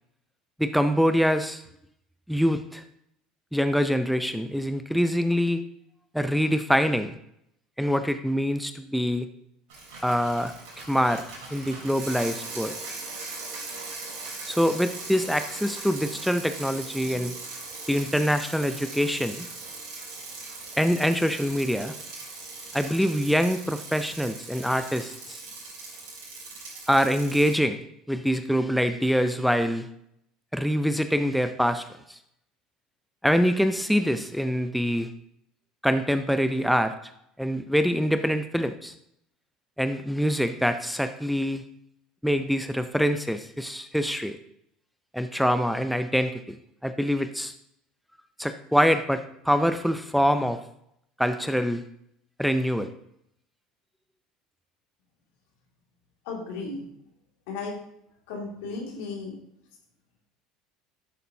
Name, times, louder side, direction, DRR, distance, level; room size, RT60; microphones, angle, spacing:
voice 1, 0.6-1.6 2.3-2.8 3.5-5.6 6.1-7.1 7.8-9.3 10.0-10.5 10.9-11.2 11.5-12.7 14.5-17.3 17.9-19.5 20.8-21.9 22.7-25.4 26.9-27.8 28.1-29.9 30.5-32.2 33.2-35.1 35.8-37.0 37.4-38.9 39.8-41.6 42.2-44.4 45.1-46.4 46.8-47.5 48.4-50.6 51.2-51.8 52.4-52.9, equal, ahead, 9 dB, 0.5 m, -25 dB
Bicycle, 9.7-27.5, right 3 dB, 65° right, 3.3 m, -40 dB
voice 2, 56.2-56.8 57.5-57.7 58.3-59.4, left 4 dB, 70° left, -1 dB, 2.3 m, -34 dB
11.5 x 6.7 x 2.8 m, 0.74 s
hypercardioid pair, 75°, 0 cm